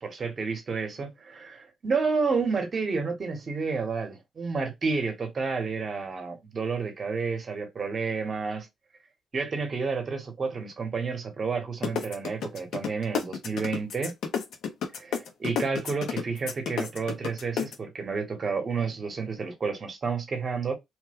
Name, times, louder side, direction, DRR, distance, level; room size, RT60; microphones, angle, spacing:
voice 1, 0.0-8.7 9.3-14.1 15.0-20.7, right 4 dB, 35° right, 0.9 m, -30 dB
sound 1, 11.8-17.8, left 7 dB, 80° left, 0.7 m, -30 dB
3.0 x 2.2 x 3.4 m
cardioid pair, 145°, 0 cm